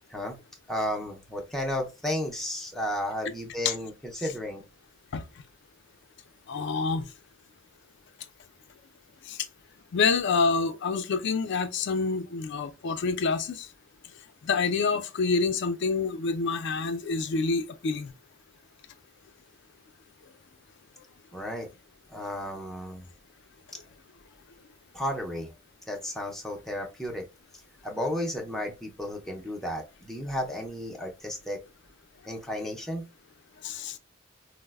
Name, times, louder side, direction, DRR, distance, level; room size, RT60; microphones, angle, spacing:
voice 1, 0.7-4.6 21.3-21.7 22.1-23.0 24.9-25.5 25.9-27.2 27.8-31.6 32.2-33.0, left 1 dB, ahead, 0.4 m, -33 dB
voice 2, 6.5-7.1 9.3-9.4 9.9-13.7 14.4-18.1 33.6-34.0, left 4 dB, 60° left, 0.4 m, -27 dB
3.9 x 2.0 x 2.2 m
head